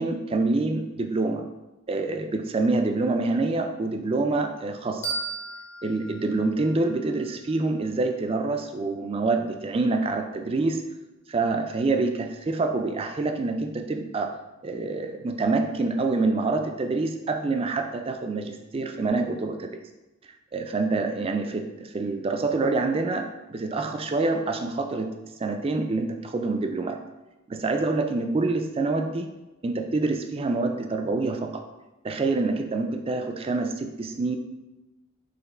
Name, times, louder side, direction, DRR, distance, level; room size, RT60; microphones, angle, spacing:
voice 1, 0.0-1.4 1.9-5.1 5.8-10.8 11.3-14.3 14.6-19.7 20.5-25.1 25.4-27.0 27.5-29.3 29.6-31.6 32.0-34.4, right 3 dB, 25° right, 5 dB, 0.3 m, -26 dB
sound 1, 5.0-7.8, right 3 dB, 55° left, 1.0 m, -36 dB
4.0 x 3.1 x 4.2 m, 1.0 s
head